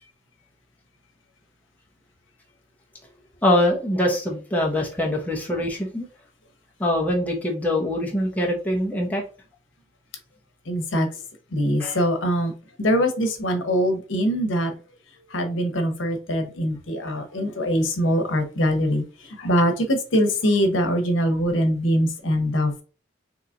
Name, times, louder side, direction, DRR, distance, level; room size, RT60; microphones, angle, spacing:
voice 1, 3.4-6.1 6.8-9.2 11.8-12.1, left 1 dB, 10° left, 0.7 m, -23 dB
voice 2, 10.7-11.1 11.5-12.5 12.8-14.7 15.3-19.0 19.4-22.8, equal, 90° left, 0.9 m, -22 dB
3.9 x 2.9 x 2.5 m
head